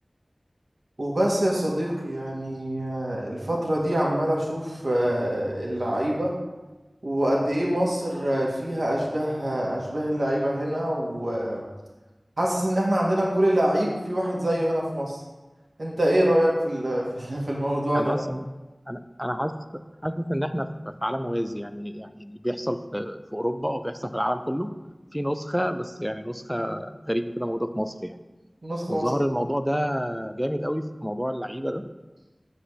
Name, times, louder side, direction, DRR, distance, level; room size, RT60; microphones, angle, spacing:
voice 1, 1.0-6.3 7.0-11.6 12.4-15.2 15.8-18.1 28.6-29.1, right 1 dB, 70° right, -3 dB, 1.7 m, -25 dB
voice 2, 17.9-18.5 18.9-24.7 25.1-28.2 28.9-31.8, equal, ahead, 9 dB, 0.5 m, -29 dB
7.9 x 4.1 x 6.2 m, 1.1 s
wide cardioid pair, 45°, 0 cm